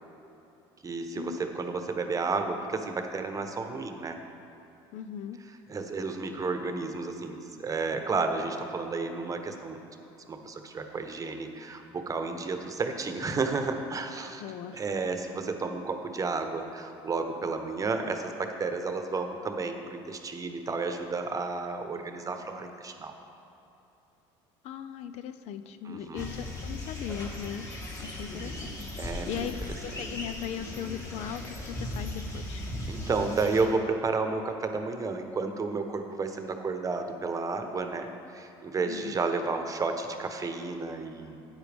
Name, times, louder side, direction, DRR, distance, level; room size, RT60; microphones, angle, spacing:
voice 1, 0.8-4.2 5.7-9.8 10.3-14.4 14.7-23.1 25.8-26.3 29.0-29.5 32.9-41.5, right 4 dB, 30° right, 6 dB, 1.0 m, -32 dB
voice 2, 4.9-5.4 14.4-14.8 24.6-29.5 29.8-32.7 38.9-39.1, left 9 dB, 60° left, 10 dB, 0.5 m, -38 dB
sound 1, 26.1-33.7, left 1 dB, 25° left, 2.6 m, -38 dB
13.0 x 9.0 x 3.5 m, 2.9 s
supercardioid pair, 85°, 12 cm